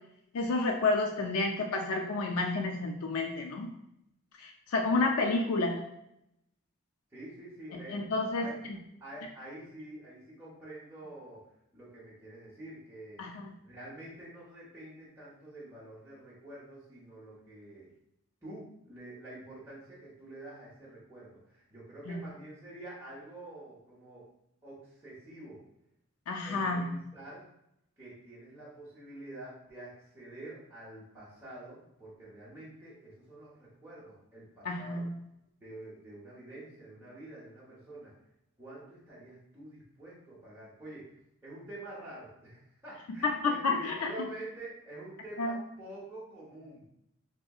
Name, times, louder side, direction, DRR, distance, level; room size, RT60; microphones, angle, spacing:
voice 1, 0.3-3.7 4.4-5.8 7.7-8.5 13.2-13.5 22.1-22.2 26.3-26.8 34.6-35.1 43.2-44.1 45.4-45.6, left 3 dB, 85° left, 2 dB, 0.4 m, -30 dB
voice 2, 7.1-8.0 8.4-8.6 9.0-11.5 11.7-13.3 13.6-17.9 18.4-24.2 24.6-25.6 26.4-27.4 28.0-35.1 35.6-38.1 38.6-41.1 41.4-46.9, right 1 dB, 10° right, -9 dB, 0.8 m, -47 dB
3.5 x 2.7 x 2.3 m, 0.80 s
head